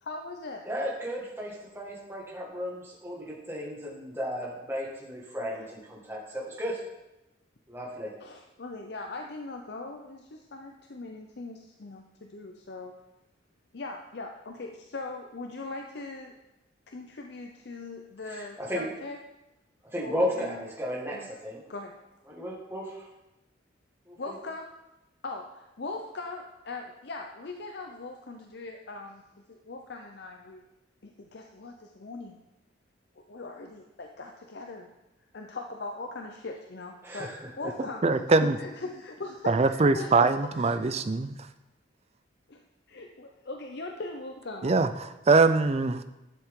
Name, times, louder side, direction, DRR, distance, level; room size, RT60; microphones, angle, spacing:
voice 1, 0.0-0.6 5.6-5.7 8.2-12.9 13.7-16.3 16.9-19.2 20.0-20.6 21.1-21.3 21.7-21.9 24.2-24.7 25.2-29.2 29.5-30.6 31.0-32.4 33.2-34.9 35.3-40.8 42.5-42.6 42.9-44.7, left 3 dB, 55° left, 3 dB, 0.6 m, -40 dB
voice 2, 0.6-6.8 7.7-8.1 18.3-18.9 19.9-21.6 22.3-23.1 24.1-24.2 37.0-37.7, equal, 10° right, -3 dB, 1.8 m, -34 dB
voice 3, 38.0-38.6 39.5-41.4 44.6-46.0, right 3 dB, 35° right, 10 dB, 0.4 m, -23 dB
11.0 x 7.2 x 3.7 m, 0.96 s
head